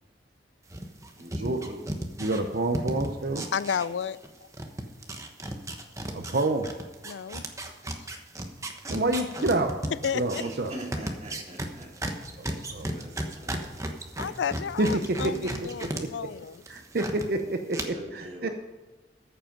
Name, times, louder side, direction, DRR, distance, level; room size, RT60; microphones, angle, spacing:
sound 1, 0.7-4.3 4.5-16.0 16.3-17.3 17.7-17.8, right 1 dB, 20° right, 1.1 m, -34 dB
voice 1, 1.1-1.9 10.3-12.3 12.9-13.7 17.7-18.5, right 1 dB, 40° right, 2.9 m, -43 dB
voice 2, 2.2-3.5 6.1-6.7 8.9-9.7 10.1-10.7 12.4-12.9 14.8-15.5 15.8-16.1 16.7-17.9 18.4-18.5, right 2 dB, 55° right, 0.7 m, -28 dB
voice 3, 3.5-4.2 7.0-7.4 10.0-10.4 14.2-16.6, left 7 dB, 80° left, 0.4 m, -32 dB
14.0 x 7.8 x 5.3 m
head